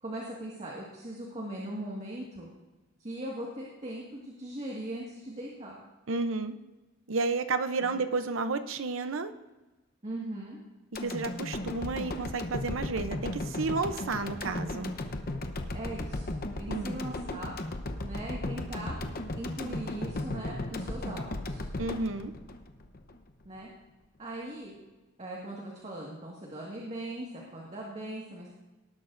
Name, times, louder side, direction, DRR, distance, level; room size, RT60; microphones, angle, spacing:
voice 1, 0.0-2.5 3.0-5.8 7.8-8.0 10.0-10.6 15.7-16.3 16.6-17.6 18.0-19.0 19.3-21.6 23.5-23.7 24.2-24.8 25.2-28.5, right 1 dB, 35° right, -3 dB, 1.8 m, -39 dB
voice 2, 6.1-6.6 7.1-9.3 11.0-14.9 16.7-17.0 21.8-22.3, right 3 dB, 80° right, 9 dB, 0.7 m, -31 dB
sound 1, 11.0-23.2 23.6-23.7, left 2 dB, 50° left, 0.9 m, -36 dB
19.0 x 11.5 x 2.6 m, 1.1 s
head